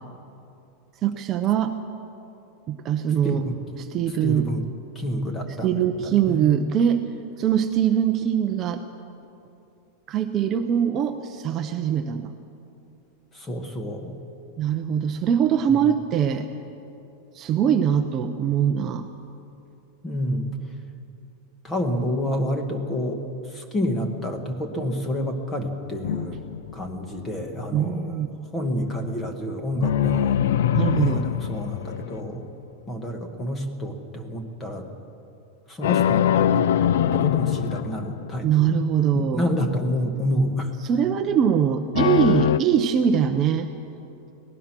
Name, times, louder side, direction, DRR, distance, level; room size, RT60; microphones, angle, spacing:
voice 1, 1.0-1.7 2.7-3.4 3.8-4.5 5.6-7.0 7.4-8.8 10.1-12.3 14.6-16.5 17.3-19.1 27.7-28.3 30.7-31.3 38.4-39.5 40.8-43.7, right 8 dB, 25° right, 6 dB, 0.7 m, -22 dB
voice 2, 4.2-4.6 4.9-6.4 13.3-14.2 20.0-20.5 21.6-23.2 23.5-26.4 26.7-28.2 28.5-30.4 30.9-32.5 32.9-34.9 35.7-38.7 39.1-40.7, equal, 15° left, 5 dB, 1.5 m, -29 dB
sound 1, 26.0-27.2 29.8-32.5 35.8-38.5 42.0-42.6, left 10 dB, 80° left, 0.5 m, -23 dB
23.0 x 18.5 x 6.1 m, 2.7 s
supercardioid pair, 170°, 0 cm